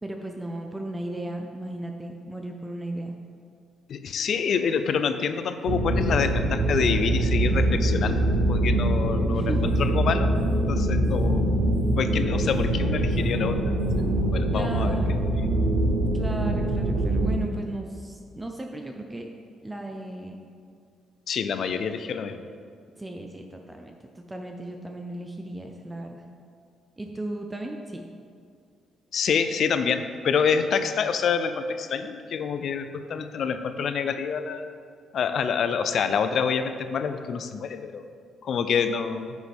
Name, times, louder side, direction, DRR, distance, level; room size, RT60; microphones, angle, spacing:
voice 1, 0.0-3.1 9.3-9.6 14.5-15.2 16.1-19.3 19.6-20.4 23.0-26.2 27.0-28.0, right 1 dB, 15° right, 3 dB, 0.6 m, -35 dB
voice 2, 3.9-9.5 9.8-10.3 10.7-11.5 12.0-13.7 14.3-15.5 21.3-22.4 29.1-34.6 35.1-38.0 38.4-39.4, left 6 dB, 60° left, 9 dB, 0.5 m, -27 dB
sound 1, 5.7-17.4, right 1 dB, 90° right, 0.8 m, -24 dB
sound 2, 9.2-14.4, left 3 dB, 85° left, 1.4 m, -39 dB
9.5 x 6.2 x 3.6 m, 2.3 s
cardioid pair, 90°, 0 cm